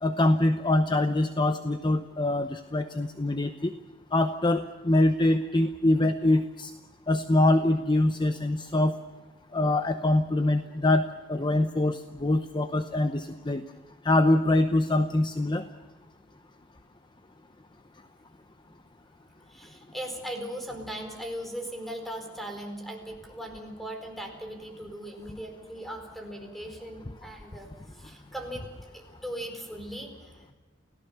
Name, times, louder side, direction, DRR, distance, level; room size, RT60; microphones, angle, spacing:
voice 1, 0.0-3.7 4.1-6.7 7.1-8.9 9.5-13.6 14.0-15.7, left 1 dB, 25° left, 9 dB, 0.8 m, -24 dB
voice 2, 19.5-30.5, equal, ahead, 4 dB, 4.4 m, -39 dB
29.5 x 17.0 x 7.1 m, 1.3 s
head